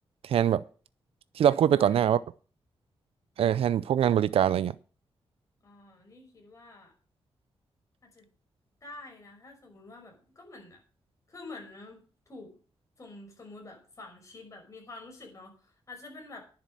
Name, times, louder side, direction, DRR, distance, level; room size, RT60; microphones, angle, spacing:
voice 1, 0.2-0.6 1.4-2.2 3.4-4.7, right 9 dB, 80° right, 0.5 m, -23 dB
voice 2, 1.4-2.1 5.6-6.9 8.0-8.3 8.8-10.8 11.3-12.6 13.0-16.4, left 2 dB, 35° left, 5.5 m, -48 dB
10.5 x 7.4 x 7.6 m
wide cardioid pair, 140°, 10 cm